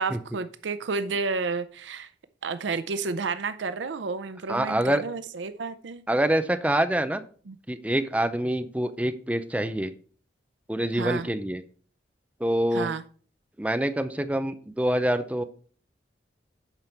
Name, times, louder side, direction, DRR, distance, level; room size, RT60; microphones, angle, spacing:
voice 1, 0.0-2.1 2.4-6.0 7.5-7.6 10.9-11.3 12.7-13.0, right 4 dB, 90° right, 12 dB, 0.6 m, -31 dB
voice 2, 4.5-5.0 6.1-7.2 7.7-9.9 10.7-11.6 12.4-12.9 13.6-15.4, right 1 dB, 10° right, 9 dB, 0.5 m, -26 dB
8.9 x 5.5 x 4.5 m, 0.42 s
head